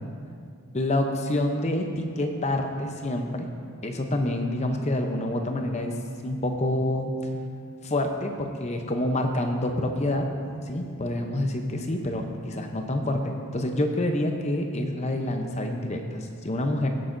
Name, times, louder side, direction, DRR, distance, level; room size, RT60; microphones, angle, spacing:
voice 1, 0.7-3.5 3.8-5.9 6.2-7.1 7.8-10.2 10.7-16.9, left 1 dB, 30° left, 4 dB, 0.7 m, -27 dB
16.5 x 8.1 x 2.6 m, 2.3 s
head